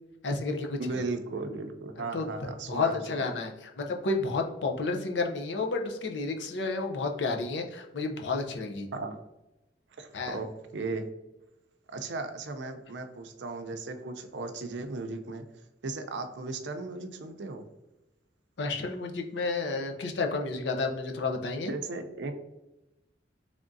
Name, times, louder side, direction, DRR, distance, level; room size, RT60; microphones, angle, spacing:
voice 1, 0.2-0.8 2.1-2.2 2.7-3.5 3.8-8.9 10.1-10.4 18.6-21.7, left 3 dB, 90° left, 3 dB, 0.6 m, -31 dB
voice 2, 0.8-3.3 8.9-9.2 10.0-11.1 11.9-15.4 15.8-17.6 21.7-22.3, right 3 dB, 90° right, 7 dB, 0.5 m, -36 dB
3.6 x 3.5 x 2.6 m, 0.98 s
head